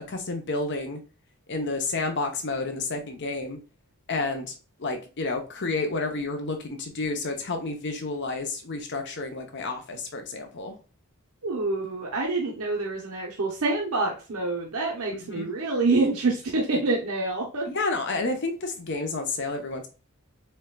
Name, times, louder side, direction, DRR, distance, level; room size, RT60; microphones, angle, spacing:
voice 1, 0.1-1.0 1.5-3.6 4.1-4.5 4.8-10.8 15.1-15.5 17.7-19.9, left 3 dB, 50° left, 0.8 m, -30 dB
voice 2, 11.4-17.7, right 3 dB, 75° right, 0.8 m, -26 dB
4.4 x 3.3 x 2.3 m
head